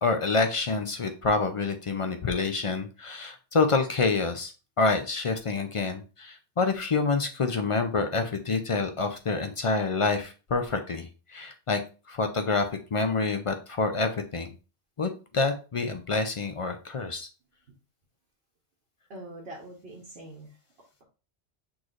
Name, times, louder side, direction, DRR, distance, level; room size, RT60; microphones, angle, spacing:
voice 1, 0.0-4.5 4.8-11.8 12.1-14.5 15.0-17.3, left 3 dB, 50° left, 7 dB, 0.4 m, -27 dB
voice 2, 19.1-20.6, right 1 dB, 65° right, -3 dB, 1.2 m, -43 dB
6.1 x 3.1 x 2.5 m, 0.33 s
omnidirectional pair, 1.1 m